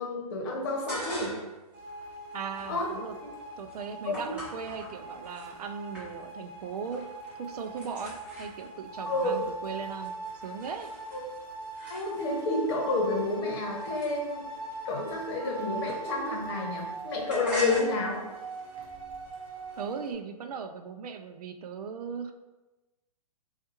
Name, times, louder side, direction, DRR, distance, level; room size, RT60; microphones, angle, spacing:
voice 1, 0.0-1.3 2.7-2.9 4.0-4.3 9.1-9.4 11.1-11.2 11.9-14.4 14.8-18.2, left 2 dB, 40° left, -1 dB, 1.0 m, -30 dB
sound 1, 0.7-1.6 2.0-5.5 5.9-6.5 6.7-7.2 7.4-12.5 13.1-16.4 16.6-19.8, equal, 5° right, 1.2 m, -43 dB
sound 2, 1.7-20.1, right 3 dB, 40° right, 0.9 m, -41 dB
voice 2, 2.3-3.1 3.6-10.9 19.8-22.3, right 6 dB, 75° right, 7 dB, 0.4 m, -38 dB
4.4 x 2.3 x 2.9 m, 1.1 s
hypercardioid pair, 145°, 20 cm